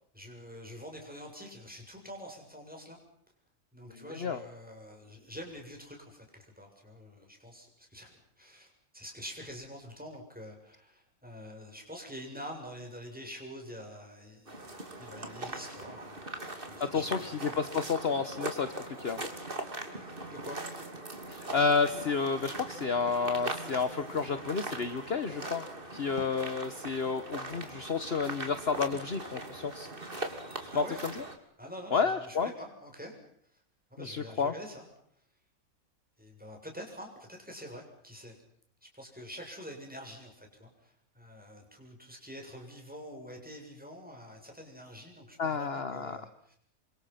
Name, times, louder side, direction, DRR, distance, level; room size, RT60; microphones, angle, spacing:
voice 1, 0.1-3.0 3.7-14.7 15.0-16.4 16.7-17.3 19.9-20.6 30.7-31.0 31.6-33.1 33.5-33.6 33.9-34.9 36.2-38.3 38.8-46.6, equal, 5° right, 1 dB, 7.7 m, -46 dB
sound 1, 14.5-31.4, right 2 dB, 35° right, 3.3 m, -41 dB
voice 2, 16.8-18.7 19.0-19.2 21.3-25.6 25.9-29.9 30.7-31.2 31.9-32.5 34.0-34.5 45.4-46.2, left 5 dB, 45° left, 11 dB, 1.4 m, -30 dB
28.0 x 26.0 x 5.9 m, 0.66 s
omnidirectional pair, 1.5 m